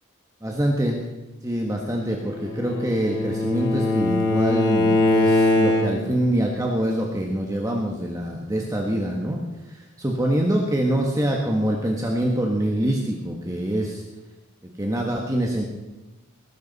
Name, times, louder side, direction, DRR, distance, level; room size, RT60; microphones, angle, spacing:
voice 1, 0.4-1.0 1.4-9.4 10.0-14.0 14.8-15.6, right 1 dB, 15° right, 0 dB, 1.3 m, -25 dB
Bowed string instrument, 2.2-6.2, left 2 dB, 50° left, 2.9 m, -21 dB
19.5 x 11.5 x 4.1 m, 1.1 s
head